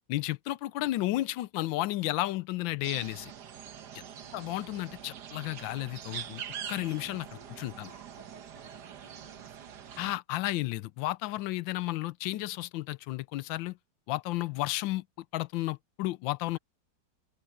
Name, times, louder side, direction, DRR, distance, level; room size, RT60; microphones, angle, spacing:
voice 1, 0.1-3.3 4.3-6.4 6.7-7.3 7.6-7.9 10.0-13.8 14.1-15.0 15.3-16.6, left 17 dB, 90° left, 1.3 m, -32 dB
sound 1, 2.8-10.2, right 9 dB, 65° right, 1.7 m, -44 dB
voice 2, 4.0-4.6 7.3-9.8, right 2 dB, 25° right, 3.6 m, -59 dB
open air
omnidirectional pair, 2.0 m